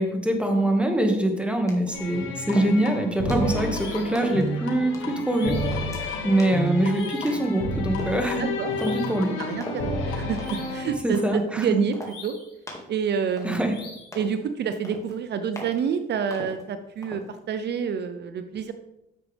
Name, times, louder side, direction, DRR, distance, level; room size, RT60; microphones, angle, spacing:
voice 1, 0.0-5.6 6.2-8.5 8.8-9.3 11.0-11.8 13.4-13.7, right 1 dB, 5° right, 3 dB, 1.8 m, -24 dB
sound 1, 1.7-2.0 2.5-2.9 3.3-3.6 4.1-4.5 4.9-5.2 5.7-6.0 6.4-6.7 7.2-7.6 8.0-8.2 8.8-9.1 9.6-9.9 10.4-10.7 11.1-11.4 11.9-12.2 12.7-12.9 13.4-13.8 14.1-14.4 14.8-15.2 15.6-15.8 16.3-16.6 17.0-17.3, left 1 dB, 15° left, 2.1 m, -40 dB
sound 2, 1.9-10.9, left 1 dB, 85° left, 2.0 m, -30 dB
sound 3, 3.7-4.3 5.3-5.9 6.9-7.5 8.7-9.3 10.4-10.9 12.0-12.6 13.7-14.2, left 4 dB, 55° left, 3.8 m, -45 dB
voice 2, 8.4-12.4 12.9-13.8 14.1-18.7, right 7 dB, 60° right, 9 dB, 0.7 m, -28 dB
10.0 x 7.3 x 3.5 m, 0.85 s
cardioid pair, 90°, 20 cm